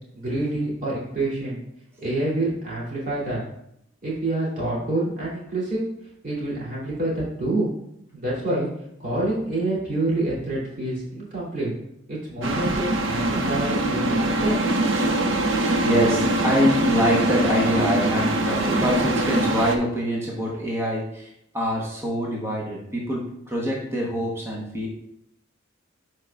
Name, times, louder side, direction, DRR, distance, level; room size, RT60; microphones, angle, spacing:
voice 1, 0.1-1.6 2.0-3.4 4.0-5.8 6.2-7.7 8.1-8.7 9.0-11.7 12.1-14.6, right 2 dB, 40° right, -6 dB, 2.8 m, -27 dB
sound 1, 12.4-19.8, right 1 dB, 75° right, 0.7 m, -23 dB
voice 2, 15.8-24.9, equal, 15° right, -3 dB, 1.0 m, -25 dB
11.0 x 4.6 x 2.4 m, 0.77 s
head